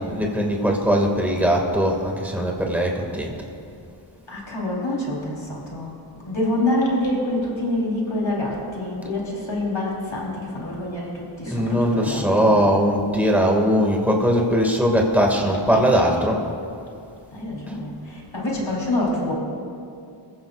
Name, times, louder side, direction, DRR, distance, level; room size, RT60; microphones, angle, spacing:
voice 1, 0.0-3.3 11.4-16.4, equal, 5° right, -1 dB, 2.3 m, -20 dB
voice 2, 4.3-6.0 6.2-12.6 17.3-19.3, left 1 dB, 70° left, -4 dB, 4.3 m, -26 dB
26.5 x 15.0 x 2.6 m, 2.5 s
wide cardioid pair, 65°, 48 cm